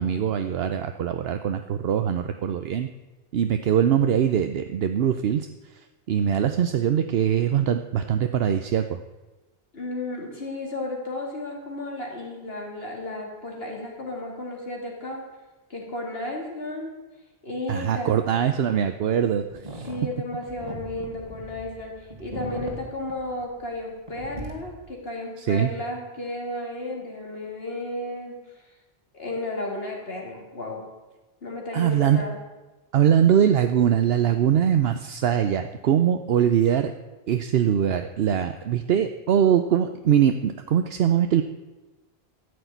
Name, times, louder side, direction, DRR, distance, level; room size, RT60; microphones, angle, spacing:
voice 1, 0.0-2.9 3.3-9.0 17.7-19.9 25.4-25.7 31.7-32.2 32.9-36.9 37.3-41.4, right 9 dB, 75° right, 8 dB, 0.9 m, -22 dB
voice 2, 9.7-15.2 15.7-16.9 17.4-18.2 19.9-28.6 29.1-30.8 31.4-32.4, left 2 dB, 70° left, 0 dB, 3.1 m, -33 dB
sound 1, 19.5-23.8 24.1-24.9, right 1 dB, 40° right, 2.2 m, -39 dB
13.5 x 6.6 x 9.3 m, 1.1 s
omnidirectional pair, 1.1 m